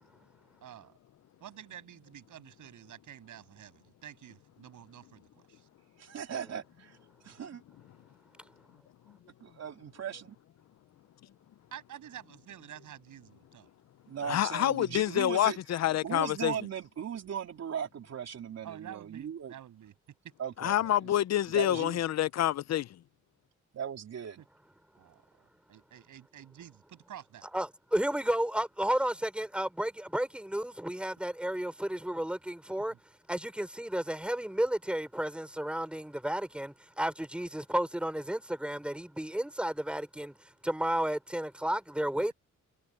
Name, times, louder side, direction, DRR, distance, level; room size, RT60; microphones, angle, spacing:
voice 1, 0.6-1.0 1.4-5.7 11.7-13.7 18.6-19.9 20.2-20.3 24.4-24.5 25.0-27.5 32.8-33.0 42.1-42.3, right 11 dB, 80° right, 7.5 m, -49 dB
voice 2, 6.0-7.0 7.2-7.6 9.4-10.4 14.1-15.6 16.0-19.5 20.4-21.1 21.5-22.0 23.7-24.4, right 8 dB, 60° right, 3.4 m, -38 dB
voice 3, 14.2-16.5 20.6-22.9, left 12 dB, 60° left, 0.5 m, -27 dB
voice 4, 27.5-32.9 33.3-40.4 40.6-42.3, right 1 dB, 5° right, 4.6 m, -32 dB
wide cardioid pair, 150°, 30 cm